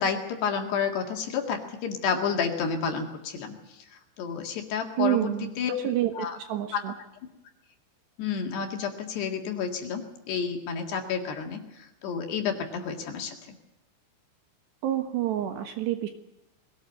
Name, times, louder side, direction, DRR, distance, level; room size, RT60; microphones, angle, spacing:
voice 1, 0.0-3.5 4.2-5.3 5.6-5.7 6.2-6.4 6.7-6.8 8.2-11.6 12.0-13.4, left 6 dB, 60° left, 3 dB, 3.7 m, -30 dB
voice 2, 5.0-5.5 5.8-6.9 14.8-16.1, right 12 dB, 70° right, 6 dB, 3.0 m, -28 dB
22.0 x 17.5 x 8.0 m, 0.88 s
omnidirectional pair, 5.9 m